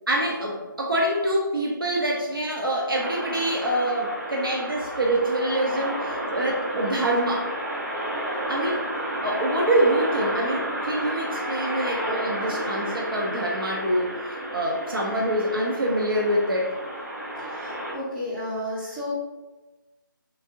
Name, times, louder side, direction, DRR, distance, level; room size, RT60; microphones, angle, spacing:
voice 1, 0.1-7.5 8.5-8.9 9.2-16.7, right 1 dB, 85° right, -2 dB, 0.8 m, -25 dB
sound 1, 2.9-17.9, right 1 dB, 45° right, 1.0 m, -31 dB
voice 2, 17.4-19.1, left 1 dB, 5° right, -9 dB, 0.4 m, -32 dB
3.3 x 2.6 x 2.8 m, 1.1 s
figure-of-eight pair, 155°, 11 cm